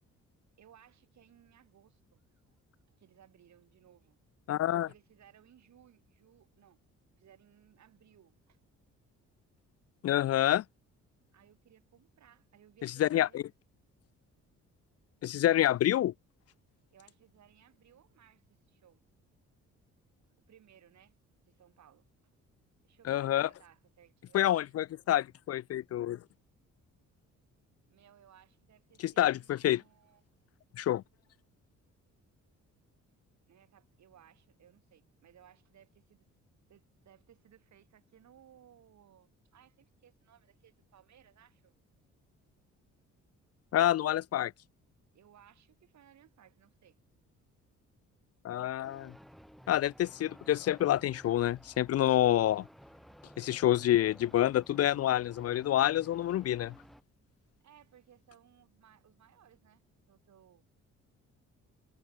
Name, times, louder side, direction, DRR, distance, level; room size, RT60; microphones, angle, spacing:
voice 1, 0.6-2.2 2.9-4.2 4.7-6.8 7.2-8.6 11.3-13.4 16.9-19.0 20.5-21.1 21.5-22.1 22.8-24.7 27.9-30.2 33.5-36.2 36.7-41.8 45.1-47.0 57.6-60.7, right 10 dB, 65° right, 6.6 m, -62 dB
voice 2, 4.5-4.9 10.0-10.6 12.8-13.4 15.2-16.1 23.1-23.5 24.3-26.2 29.0-29.8 30.8-31.0 43.7-44.5 48.4-49.1 49.7-52.6 53.4-56.7, left 12 dB, 55° left, 0.5 m, -27 dB
sound 1, 48.8-57.0, equal, ahead, 5.1 m, -55 dB
cardioid pair, 90°, 30 cm